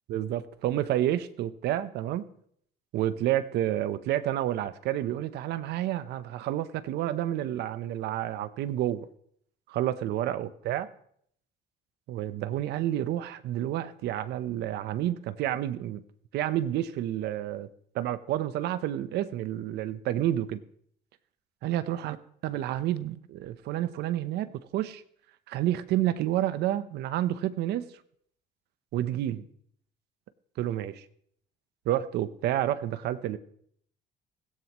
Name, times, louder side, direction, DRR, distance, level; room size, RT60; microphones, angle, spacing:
voice 1, 0.1-2.2 2.9-9.1 9.7-10.9 12.1-16.0 16.3-17.7 17.9-20.6 21.6-22.2 22.4-25.0 25.5-27.9 28.9-29.4 30.6-31.0 31.9-33.4, right 12 dB, 80° right, 13 dB, 0.9 m, -29 dB
16.5 x 16.0 x 3.1 m, 0.64 s
cardioid pair, 110°, 17 cm